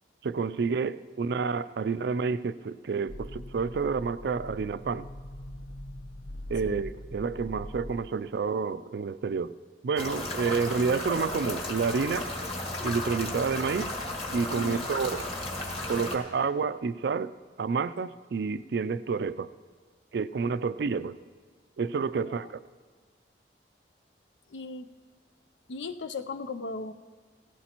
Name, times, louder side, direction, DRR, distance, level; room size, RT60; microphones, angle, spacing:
voice 1, 0.2-5.1 6.5-9.5 9.8-12.3 12.8-13.9 14.3-15.2 15.9-19.5 20.1-21.2 21.8-22.4, right 5 dB, 65° right, 0.4 m, -29 dB
sound 1, 3.1-8.1, left 1 dB, 50° left, 0.7 m, -42 dB
sound 2, 10.0-16.2, left 1 dB, 30° left, 1.6 m, -34 dB
voice 2, 14.5-15.0 20.9-21.1 22.1-22.5 24.5-24.9 25.7-26.9, left 3 dB, 85° left, 0.6 m, -37 dB
18.0 x 15.5 x 3.0 m
head